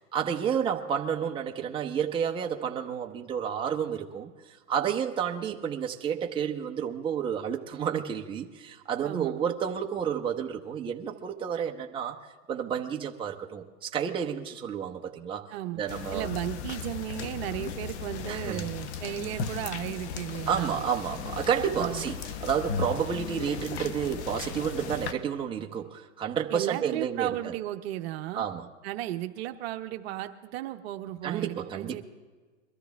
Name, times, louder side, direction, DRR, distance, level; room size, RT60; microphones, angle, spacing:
voice 1, 0.0-12.2 12.5-16.3 18.3-18.7 20.5-27.5 28.3-28.7 31.2-32.0, right 8 dB, 15° right, 2 dB, 0.8 m, -31 dB
voice 2, 9.0-9.4 15.5-15.8 16.1-20.8 21.7-22.1 26.5-28.5 28.8-32.0, right 14 dB, 50° right, 8 dB, 0.9 m, -35 dB
sound 1, 15.9-25.1, left 7 dB, 55° left, 1.0 m, -36 dB
22.5 x 13.0 x 3.5 m, 1.3 s
hypercardioid pair, 130°, 39 cm